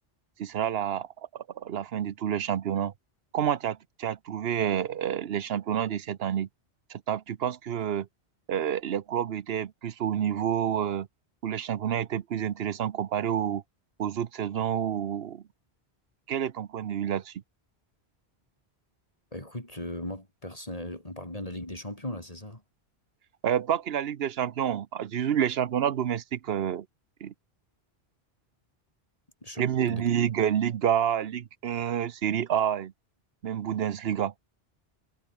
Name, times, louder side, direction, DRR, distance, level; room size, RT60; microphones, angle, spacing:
voice 1, 0.4-1.1 1.3-2.9 3.3-6.5 6.9-8.1 8.5-11.1 11.4-13.6 14.0-15.4 16.3-17.3 23.4-26.9 27.2-27.3 29.6-32.9 33.4-34.3, right 9 dB, 70° right, 1.0 m, -28 dB
voice 2, 19.3-22.6 29.4-30.0, left 1 dB, 35° left, 4.4 m, -38 dB
omnidirectional pair, 1.1 m